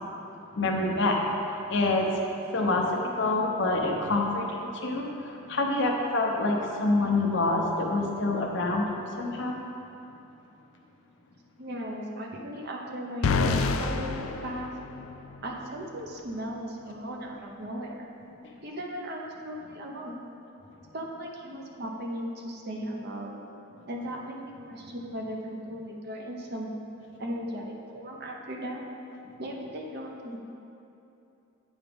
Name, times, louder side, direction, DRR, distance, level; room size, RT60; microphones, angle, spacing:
voice 1, 0.5-1.2 1.7-2.1 2.5-8.9 9.2-9.6, left 2 dB, 60° left, 0 dB, 0.8 m, -26 dB
voice 2, 11.6-14.1 14.4-14.7 15.4-18.1 18.6-20.2 20.9-23.4 23.9-26.7 27.2-28.8 29.4-30.4, equal, 50° right, 0 dB, 0.8 m, -37 dB
sound 1, 13.2-15.4, left 4 dB, 80° left, 0.4 m, -28 dB
9.0 x 4.7 x 3.5 m, 2.8 s
head